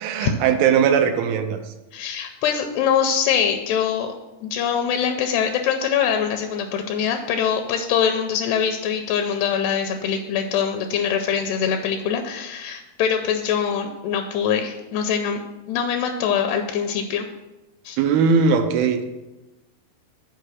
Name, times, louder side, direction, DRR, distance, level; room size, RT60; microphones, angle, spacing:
voice 1, 0.0-1.6 18.0-19.1, right 6 dB, 80° right, 7 dB, 2.3 m, -19 dB
voice 2, 1.9-4.1 4.4-15.4 15.7-17.3 17.9-18.0, left 7 dB, 80° left, 5 dB, 2.6 m, -23 dB
6.6 x 5.0 x 6.3 m, 1.0 s
omnidirectional pair, 4.7 m